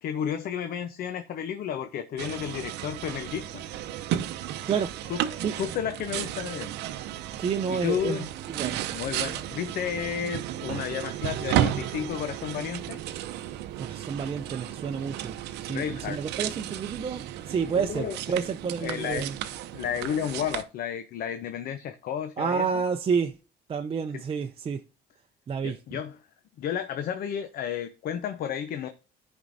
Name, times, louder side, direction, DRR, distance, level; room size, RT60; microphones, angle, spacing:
voice 1, 0.0-3.6 5.1-5.2 5.5-6.7 7.7-8.3 8.9-13.0 15.7-16.2 17.8-18.2 18.8-19.3 19.7-22.8 25.6-26.2 26.6-28.9, left 9 dB, 60° left, 0.7 m, -32 dB
sound 1, 2.2-20.6, right 11 dB, 85° right, 0.7 m, -33 dB
voice 2, 7.4-8.8 13.8-19.3 22.4-23.3 23.7-24.8 25.5-25.8, right 6 dB, 35° right, 0.6 m, -29 dB
13.5 x 5.3 x 2.6 m
cardioid pair, 110°, 17 cm